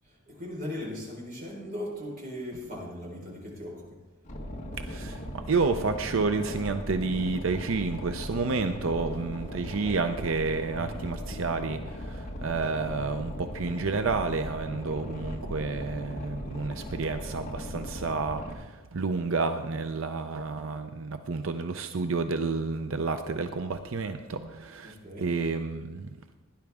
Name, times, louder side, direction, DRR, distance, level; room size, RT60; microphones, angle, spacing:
voice 1, 0.0-3.8 9.6-10.0 24.8-25.3, left 1 dB, 40° right, -3 dB, 4.4 m, -38 dB
Boat Water vehicle, 4.2-18.5, equal, 35° left, 1.6 m, -38 dB
voice 2, 4.8-26.1, right 4 dB, 65° right, 8 dB, 0.6 m, -30 dB
17.0 x 10.5 x 3.6 m, 1.2 s
head